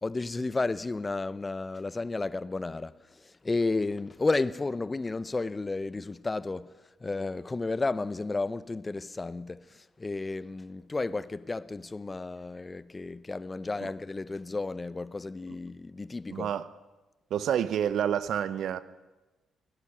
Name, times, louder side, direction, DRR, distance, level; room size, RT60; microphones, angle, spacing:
voice 1, 0.0-6.7 7.0-16.5, left 3 dB, 25° left, 0.8 m, -32 dB
voice 2, 16.3-16.7 17.3-18.8, right 9 dB, 60° right, 0.9 m, -28 dB
17.5 x 17.0 x 9.5 m
hypercardioid pair, 40°, 0 cm